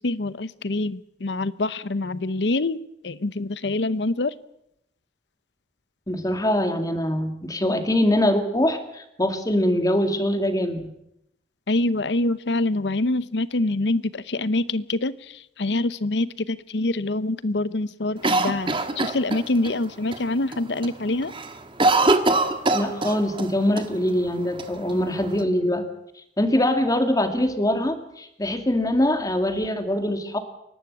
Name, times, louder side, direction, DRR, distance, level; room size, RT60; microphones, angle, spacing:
voice 1, 0.0-4.3 11.7-21.3, left 2 dB, 75° left, 17 dB, 0.8 m, -25 dB
voice 2, 6.1-10.9 22.7-25.9 26.4-30.4, left 1 dB, 20° left, 7 dB, 2.1 m, -23 dB
Cough, 18.2-19.7 20.1-20.2 20.5-20.9 21.2-23.5 23.8-23.9 24.6-25.4, right 2 dB, 30° right, 1.5 m, -22 dB
28.0 x 12.0 x 8.5 m, 0.80 s
head